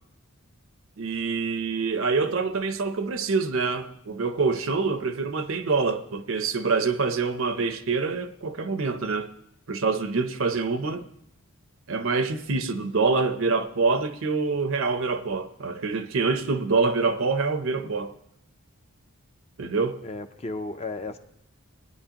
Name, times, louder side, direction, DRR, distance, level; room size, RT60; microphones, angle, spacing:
voice 1, 1.0-9.3 9.7-11.1 11.9-18.1 19.6-20.0, right 4 dB, 60° right, 0.7 m, -26 dB
voice 2, 20.0-21.2, left 2 dB, 30° left, 0.5 m, -34 dB
21.0 x 9.5 x 2.9 m
head